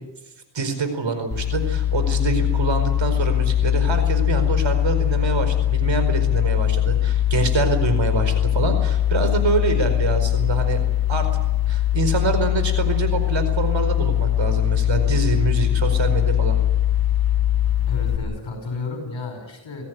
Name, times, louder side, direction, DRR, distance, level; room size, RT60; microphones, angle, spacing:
voice 1, 0.5-10.8 11.1-11.3 11.7-16.6, right 4 dB, 70° right, 9 dB, 4.9 m, -25 dB
sound 1, 1.3-18.2, left 12 dB, 50° left, 3.0 m, -21 dB
voice 2, 17.9-19.8, left 3 dB, 70° left, 5 dB, 6.0 m, -32 dB
23.0 x 16.5 x 9.6 m, 1.0 s
cardioid pair, 75°, 47 cm